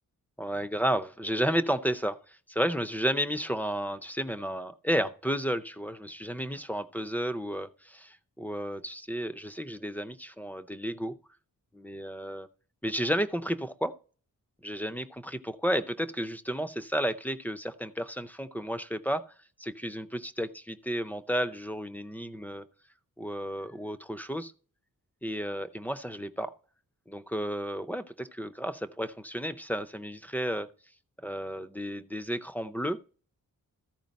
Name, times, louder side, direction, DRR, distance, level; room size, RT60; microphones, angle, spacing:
voice 1, 0.4-11.1 11.7-12.5 12.8-14.0 14.6-19.3 19.6-22.6 23.2-24.5 25.2-26.5 27.1-30.7 31.2-33.0, equal, 5° left, 0.5 m, -32 dB
14.0 x 4.8 x 5.2 m
wide cardioid pair, 160°, 34 cm